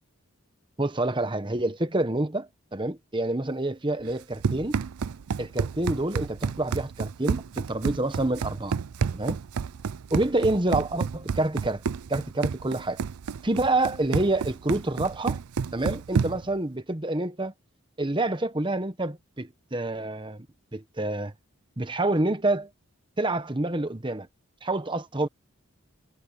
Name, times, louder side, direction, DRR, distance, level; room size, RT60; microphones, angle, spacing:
voice 1, 0.8-4.8 5.4-8.8 9.1-9.4 10.1-11.8 12.1-13.0 13.4-15.4 15.7-17.5 18.0-20.5 20.7-21.3 21.8-22.7 23.2-24.3 24.6-25.3, right 2 dB, 20° right, 1.1 m, -27 dB
Run, 4.1-16.5, right 6 dB, 80° right, 0.5 m, -30 dB
head